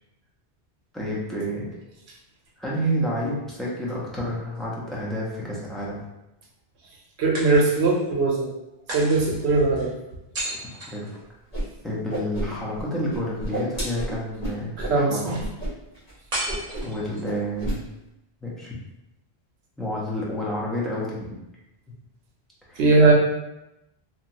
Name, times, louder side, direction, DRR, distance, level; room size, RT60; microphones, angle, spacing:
voice 1, 0.9-1.7 2.6-6.0 10.9-11.1 11.8-15.4 16.8-17.9 18.4-18.8 19.8-21.3 22.7-22.8, equal, ahead, -7 dB, 0.5 m, -29 dB
sound 1, 4.2-5.3 7.3-8.1 8.9-11.7 16.3-17.4, right 1 dB, 40° right, 0.9 m, -35 dB
voice 2, 7.2-8.5 8.9-9.9 14.8-15.3 22.8-23.1, right 3 dB, 80° right, -2 dB, 0.9 m, -20 dB
Whoosh swoosh swish, 11.5-11.6 11.9-12.8 13.1-15.0 15.4-15.7 15.9-16.1 16.5-17.0 17.2-17.8, right 1 dB, 40° left, 1.4 m, -30 dB
2.9 x 2.4 x 2.7 m, 0.89 s
omnidirectional pair, 1.1 m